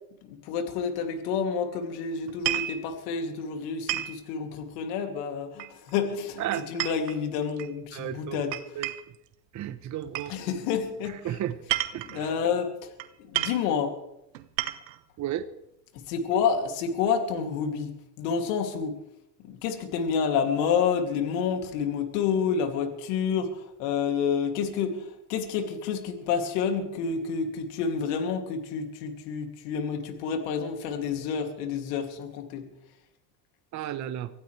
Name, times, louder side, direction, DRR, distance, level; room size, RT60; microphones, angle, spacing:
voice 1, 0.3-8.6 10.3-11.4 12.0-12.9 13.2-14.0 15.9-19.0 19.4-32.7, left 6 dB, 70° left, 4 dB, 2.9 m, -29 dB
sound 1, 2.3-2.8 3.9-4.2 5.6-6.0 6.5-7.7 8.5-9.2 10.1-10.3 11.5-12.2 13.0-13.1 13.3-13.7 14.3-15.0, right 14 dB, 85° right, 1.3 m, -31 dB
voice 2, 6.4-6.9 7.9-8.4 8.8-8.9 9.5-10.3 11.2-11.5 11.9-12.3 15.2-15.5 33.7-34.3, right 11 dB, 35° right, 9 dB, 1.0 m, -33 dB
24.5 x 15.5 x 3.4 m, 0.83 s
supercardioid pair, 105°, 50 cm